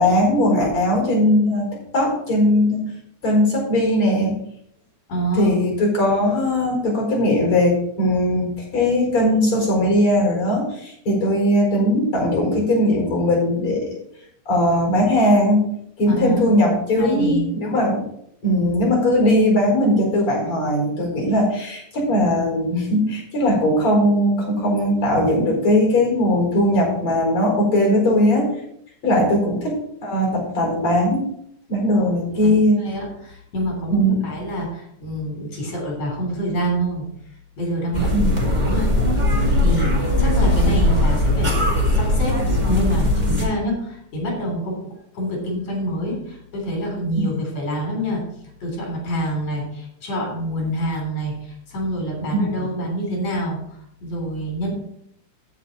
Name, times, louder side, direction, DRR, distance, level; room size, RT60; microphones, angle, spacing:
voice 1, 0.0-1.7 1.9-2.8 3.2-4.3 5.3-13.9 14.5-15.6 16.0-18.1 18.4-28.5 29.0-31.2 31.7-32.8 33.9-34.2 38.1-38.3 47.2-47.4 52.3-52.6, left 1 dB, 45° left, 0 dB, 5.3 m, -19 dB
voice 2, 5.1-5.6 16.1-16.5 16.9-17.5 29.1-29.5 31.9-32.1 32.4-32.5 32.8-37.0 37.6-38.9 39.6-44.8 45.1-48.2 48.6-53.6 54.0-54.7, equal, 60° left, -1 dB, 4.7 m, -27 dB
sound 1, 37.9-43.4, left 1 dB, 15° right, 1.8 m, -19 dB
15.5 x 5.5 x 4.2 m, 0.71 s
omnidirectional pair, 3.4 m